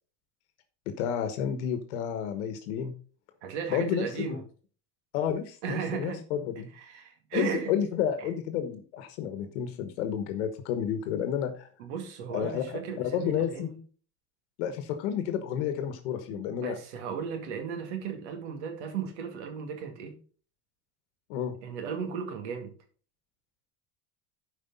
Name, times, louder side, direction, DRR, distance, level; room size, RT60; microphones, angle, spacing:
voice 1, 0.9-2.9 3.7-4.4 5.1-6.7 7.3-11.7 12.3-13.7 14.6-16.8 21.3-21.5, left 9 dB, 85° left, 8 dB, 1.2 m, -31 dB
voice 2, 3.4-4.4 5.6-6.2 6.8-7.7 8.2-8.3 11.8-13.8 16.3-20.2 21.6-22.7, right 6 dB, 85° right, 5 dB, 2.2 m, -35 dB
12.0 x 5.0 x 3.9 m, 0.40 s
supercardioid pair, 130°, 34 cm